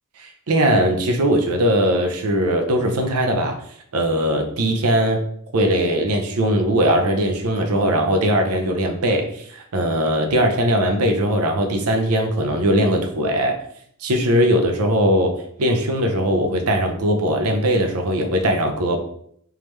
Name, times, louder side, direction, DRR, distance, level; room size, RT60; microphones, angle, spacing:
voice 1, 0.2-3.6 3.9-5.2 5.5-13.5 14.0-15.3 15.6-19.0, equal, 85° right, 4 dB, 0.7 m, -20 dB
3.6 x 3.2 x 3.2 m, 0.66 s
head